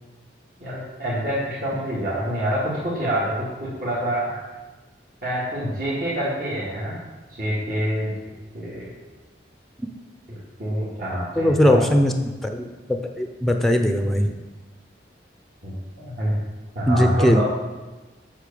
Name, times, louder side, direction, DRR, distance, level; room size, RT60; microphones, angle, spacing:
voice 1, 0.6-3.3 3.6-4.4 5.2-7.0 7.4-8.1 8.5-8.9 10.6-11.8 15.6-16.4 16.7-17.4, right 1 dB, 55° right, -9 dB, 2.3 m, -26 dB
voice 2, 11.4-14.3 16.9-17.4, left 1 dB, ahead, 5 dB, 0.6 m, -20 dB
8.4 x 5.9 x 6.9 m, 1.2 s
head